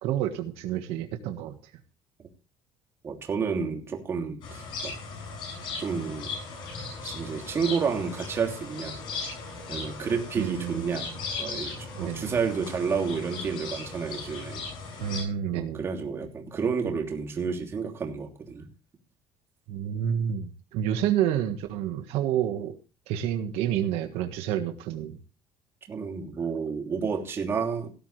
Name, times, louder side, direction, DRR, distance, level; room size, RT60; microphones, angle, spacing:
voice 1, 0.0-1.5 10.4-11.1 12.0-12.3 15.0-15.8 19.7-22.8 23.1-25.2, right 10 dB, 80° right, 6 dB, 1.6 m, -29 dB
voice 2, 3.0-4.9 5.8-6.3 7.0-9.0 9.7-11.1 11.4-14.6 15.5-18.6 25.9-27.9, right 5 dB, 25° right, 1 dB, 3.0 m, -30 dB
sound 1, 4.4-15.2, left 4 dB, 50° left, 7.3 m, -37 dB
17.5 x 12.0 x 3.3 m, 0.34 s
cardioid pair, 180°, 10 cm